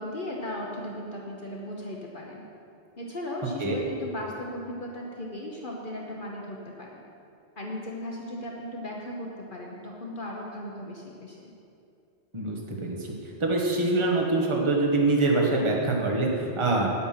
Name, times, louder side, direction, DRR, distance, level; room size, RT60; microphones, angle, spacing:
voice 1, 0.0-2.4 3.0-7.0 7.6-11.5, left 1 dB, 50° left, -2 dB, 1.1 m, -37 dB
voice 2, 12.3-13.0 13.4-16.3 16.6-16.9, right 2 dB, 25° right, -1 dB, 1.2 m, -24 dB
9.2 x 8.4 x 5.7 m, 2.6 s
omnidirectional pair, 1.2 m